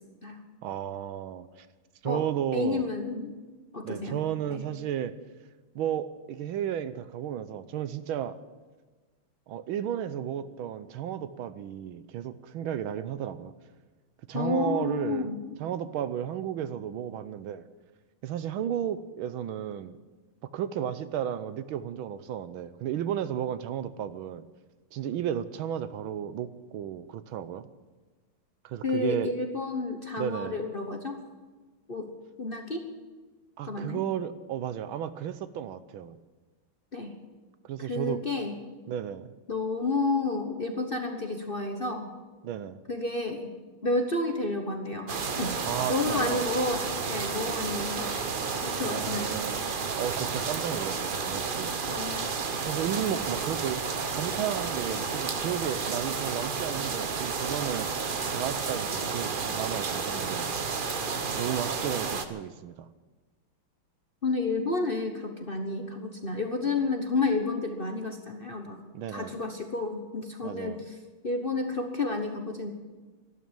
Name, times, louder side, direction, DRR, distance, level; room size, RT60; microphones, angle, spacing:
voice 1, 0.6-1.7 2.0-2.9 3.8-5.1 5.7-8.4 9.5-13.5 14.3-15.3 15.6-17.7 18.2-20.0 20.4-24.4 24.9-27.7 28.6-29.3 30.2-30.6 33.6-36.2 37.6-38.2 38.9-39.3 42.4-42.8 45.6-46.4 48.8-49.7 50.0-51.7 52.6-53.8 54.1-60.5 61.4-62.9 68.9-69.4 70.4-70.8, right 10 dB, 75° right, 13 dB, 1.5 m, -33 dB
voice 2, 2.5-3.3 3.7-4.2 4.5-4.6 14.3-15.4 28.8-31.2 31.9-32.1 32.4-32.9 33.7-34.0 36.9-37.1 37.8-38.6 39.5-42.1 42.9-43.5 43.8-45.6 45.9-46.8 47.1-48.1 48.6-49.4 51.9-52.3 64.2-68.8 69.1-70.9 71.2-72.7, left 3 dB, 35° left, 4 dB, 1.0 m, -30 dB
sound 1, 45.1-62.3, right 5 dB, 50° right, 0.6 m, -31 dB
12.5 x 12.5 x 9.0 m, 1.3 s
omnidirectional pair, 2.4 m